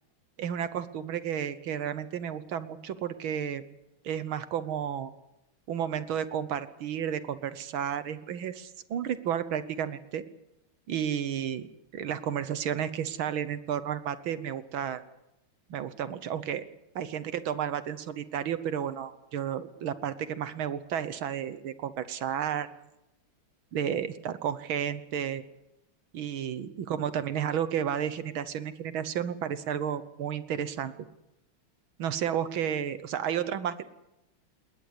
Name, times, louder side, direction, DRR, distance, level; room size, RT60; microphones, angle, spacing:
voice 1, 0.4-3.6 4.0-5.1 5.7-10.2 10.9-11.7 11.9-15.0 15.7-16.6 17.0-22.7 23.7-25.4 26.1-30.9 32.0-33.9, right 9 dB, 75° right, 13 dB, 1.9 m, -32 dB
20.5 x 19.0 x 8.2 m, 0.90 s
omnidirectional pair, 2.3 m